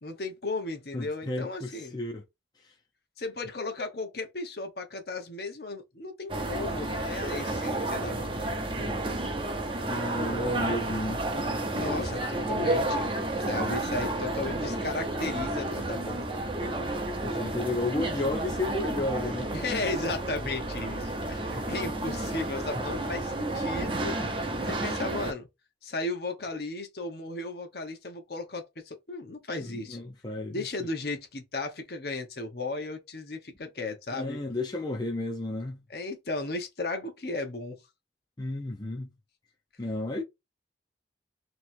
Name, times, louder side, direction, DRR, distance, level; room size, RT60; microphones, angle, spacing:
voice 1, 0.0-2.0 3.2-8.7 11.7-13.1 13.4-16.3 19.5-24.1 24.7-25.5 25.8-30.0 30.5-34.4 35.9-37.8, left 2 dB, 60° left, 1.0 m, -35 dB
voice 2, 0.9-2.2 8.8-9.0 9.9-11.2 11.8-12.0 12.4-12.6 17.2-19.5 21.5-21.6 24.2-24.3 29.6-30.6 34.1-35.8 38.4-39.1 39.8-40.2, left 2 dB, 25° left, 0.6 m, -33 dB
sound 1, 6.3-25.3, right 2 dB, 30° right, 0.7 m, -31 dB
3.1 x 3.0 x 4.4 m
head